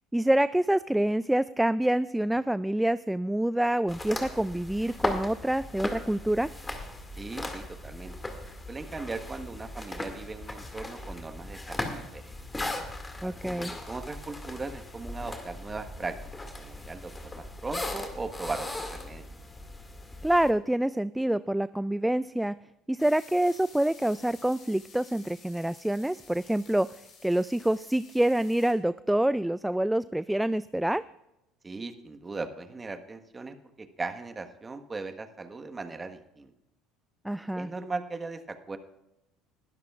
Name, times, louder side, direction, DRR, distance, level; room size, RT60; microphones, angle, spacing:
voice 1, 0.1-6.5 13.2-13.7 20.2-22.5 22.9-26.9 27.2-31.0 37.2-37.7, right 1 dB, 5° right, 16 dB, 0.3 m, -26 dB
sound 1, 3.9-20.5, left 2 dB, 15° left, 2.1 m, -38 dB
voice 2, 7.1-8.1 8.7-12.3 13.2-16.2 16.6-19.3 31.6-36.5 37.5-38.8, right 3 dB, 20° right, 8 dB, 1.3 m, -38 dB
sound 2, 23.0-28.7, left 4 dB, 45° left, 6.0 m, -53 dB
20.5 x 12.5 x 2.4 m, 0.87 s
hypercardioid pair, 75°, 0 cm